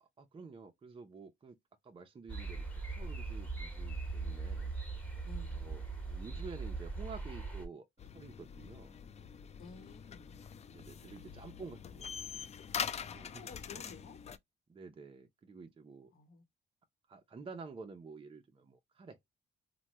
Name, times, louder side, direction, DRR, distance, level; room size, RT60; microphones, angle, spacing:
voice 1, 0.0-1.6 1.8-4.7 5.5-7.9 8.1-9.0 10.7-12.1 13.1-13.9 14.7-16.1 17.1-19.2, right 4 dB, 25° right, 0.6 m, -50 dB
sound 1, 2.3-7.7, right 3 dB, 5° left, 1.3 m, -40 dB
voice 2, 5.2-5.7 9.6-10.4 13.0-14.2 16.1-16.4, left 4 dB, 50° left, 1.0 m, -53 dB
sound 2, 8.0-14.4, left 7 dB, 35° left, 0.4 m, -44 dB
3.0 x 2.2 x 2.9 m
cardioid pair, 90°, 20 cm